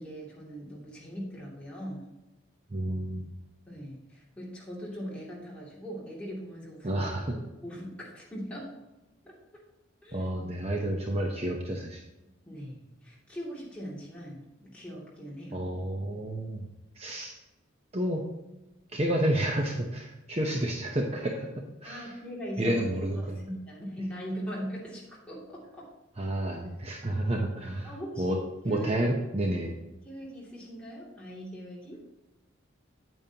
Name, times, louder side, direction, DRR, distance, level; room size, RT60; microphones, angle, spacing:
voice 1, 0.0-2.1 3.7-8.7 9.2-9.6 10.0-10.3 12.5-15.7 21.8-22.8 23.1-25.9 27.8-28.4 28.6-28.9 30.0-32.0, equal, 5° left, -6 dB, 2.6 m, -40 dB
voice 2, 2.7-3.2 6.8-7.3 10.1-12.0 15.5-16.7 17.0-17.4 17.9-18.2 18.9-22.1 22.6-23.4 26.2-27.9 28.2-28.4 28.6-29.7, right 1 dB, 30° right, 0 dB, 0.8 m, -30 dB
9.1 x 8.9 x 2.9 m, 1.0 s
head